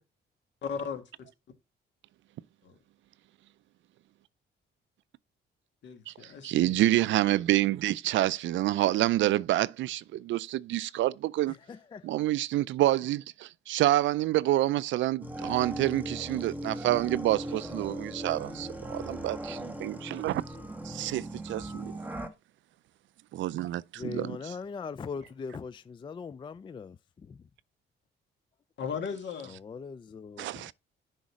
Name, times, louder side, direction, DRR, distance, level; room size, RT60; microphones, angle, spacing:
voice 1, 0.6-1.0 2.6-2.8 5.8-6.8 28.8-29.6, left 6 dB, 65° left, 1.8 m, -36 dB
voice 2, 6.4-11.6 12.0-20.4 20.8-22.0 23.3-24.5 30.4-30.7, right 15 dB, 70° right, 0.4 m, -28 dB
voice 3, 11.5-12.1 24.0-27.0 27.2-27.4 29.5-30.7, left 5 dB, 25° left, 0.3 m, -40 dB
sound 1, 15.2-22.3, right 1 dB, 10° right, 1.2 m, -38 dB
6.4 x 4.0 x 6.1 m
cardioid pair, 90°, 20 cm